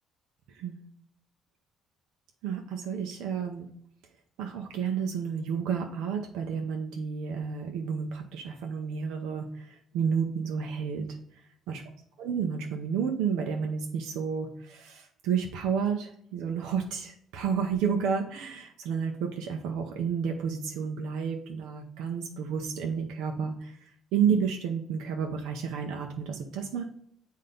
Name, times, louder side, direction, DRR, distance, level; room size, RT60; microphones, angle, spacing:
voice 1, 0.5-0.8 2.4-3.7 4.4-11.1 11.7-11.8 12.2-26.8, right 6 dB, 85° right, 2 dB, 0.7 m, -31 dB
7.6 x 2.8 x 5.2 m, 0.68 s
cardioid pair, 155°, 0 cm